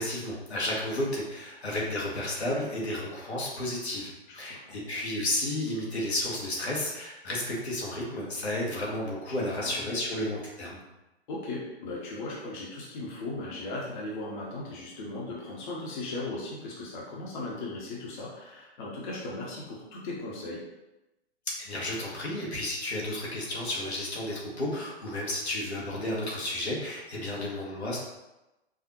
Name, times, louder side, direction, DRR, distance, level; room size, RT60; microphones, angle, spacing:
voice 1, 0.0-10.8 21.7-28.0, left 1 dB, 80° left, -4 dB, 1.4 m, -32 dB
voice 2, 4.3-4.8 9.2-9.9 11.3-20.6, left 2 dB, 50° left, -4 dB, 1.1 m, -37 dB
4.8 x 2.7 x 2.9 m, 0.98 s
figure-of-eight pair, 115°, 32 cm